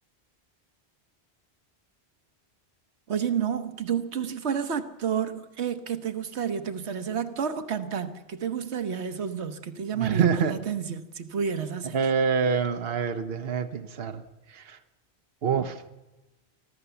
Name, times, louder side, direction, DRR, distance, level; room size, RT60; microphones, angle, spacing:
voice 1, 3.1-12.0, right 7 dB, 85° right, 1.4 m, -30 dB
voice 2, 9.9-10.5 11.9-14.8 15.4-15.8, right 6 dB, 65° right, 1.2 m, -26 dB
24.0 x 15.5 x 7.0 m
omnidirectional pair, 1.1 m